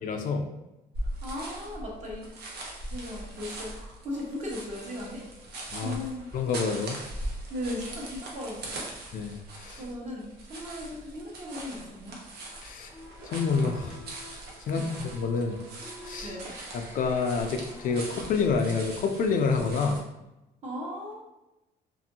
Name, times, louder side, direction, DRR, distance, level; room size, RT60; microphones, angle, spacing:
voice 1, 0.0-0.5 5.7-6.0 6.3-7.0 9.1-9.8 12.6-12.9 13.2-14.0 14.7-15.6 16.0-16.4 16.7-20.0, left 4 dB, 55° left, 4 dB, 0.4 m, -28 dB
sound 1, 0.9-20.0, right 1 dB, 70° right, 0.7 m, -41 dB
voice 2, 1.2-2.3 2.9-5.2 5.8-6.3 7.5-8.9 9.8-12.2 14.7-15.0 16.2-16.5 20.6-21.2, left 1 dB, 45° right, -4 dB, 1.1 m, -37 dB
sound 2, 12.5-18.0, left 1 dB, 15° right, 0.5 m, -48 dB
2.6 x 2.6 x 2.7 m, 0.96 s
cardioid pair, 110°, 17 cm